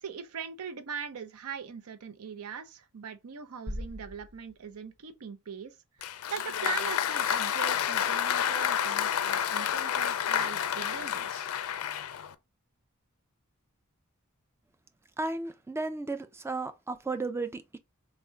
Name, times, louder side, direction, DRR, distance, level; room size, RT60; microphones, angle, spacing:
voice 1, 0.0-11.5, right 6 dB, 75° right, 0.5 m, -41 dB
sound 1, 3.7-5.5, equal, 50° right, 0.8 m, -42 dB
Applause, 6.0-12.3, left 9 dB, 70° left, 0.4 m, -29 dB
voice 2, 15.2-17.8, right 3 dB, 10° right, 0.4 m, -34 dB
3.5 x 2.1 x 4.3 m
head